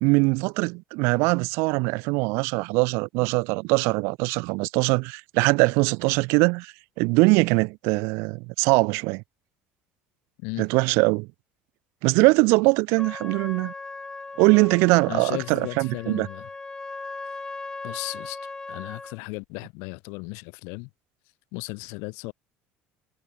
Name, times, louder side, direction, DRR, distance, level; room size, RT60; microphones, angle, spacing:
voice 1, 0.0-9.2 10.6-11.3 12.0-13.7 14.4-16.3, right 28 dB, 75° right, 0.5 m, -22 dB
Trumpet, 13.0-19.2, left 3 dB, 15° left, 4.0 m, -38 dB
voice 2, 15.1-16.5 17.8-18.4 18.7-20.9 21.5-22.3, left 32 dB, 80° left, 1.6 m, -35 dB
supercardioid pair, 105°, 4 cm